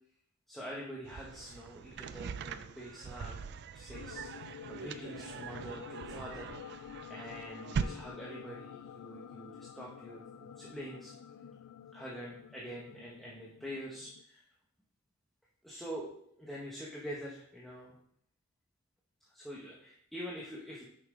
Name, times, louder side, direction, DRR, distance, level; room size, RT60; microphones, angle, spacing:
voice 1, 0.5-3.4 3.7-11.1 11.9-14.5 15.6-16.1 16.3-18.0 19.3-20.9, equal, ahead, -5 dB, 0.9 m, -45 dB
sound 1, 1.0-7.8, right 6 dB, 50° right, 0.3 m, -42 dB
sound 2, 3.9-14.2, left 8 dB, 90° left, 0.3 m, -49 dB
6.5 x 5.6 x 3.6 m, 0.69 s
head